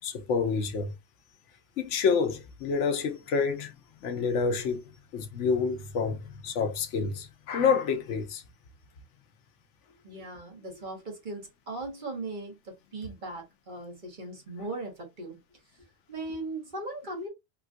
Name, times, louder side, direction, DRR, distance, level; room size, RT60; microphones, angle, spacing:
voice 1, 0.0-0.9 1.8-3.7 4.0-4.8 5.1-8.4, left 5 dB, 85° left, 1.0 m, -28 dB
voice 2, 10.0-15.4 16.1-17.3, right 2 dB, 45° right, 1.3 m, -38 dB
3.6 x 2.4 x 2.5 m
omnidirectional pair, 1.2 m